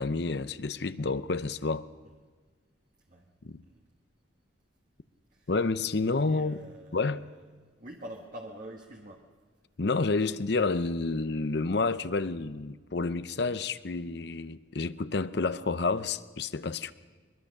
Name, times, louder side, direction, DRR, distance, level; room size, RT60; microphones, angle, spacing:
voice 1, 0.0-1.9 3.4-3.6 5.5-6.6 6.9-7.2 9.8-16.9, left 3 dB, 55° left, 0.7 m, -29 dB
voice 2, 6.2-9.2, right 1 dB, 45° right, 1.7 m, -46 dB
24.0 x 22.0 x 6.6 m
head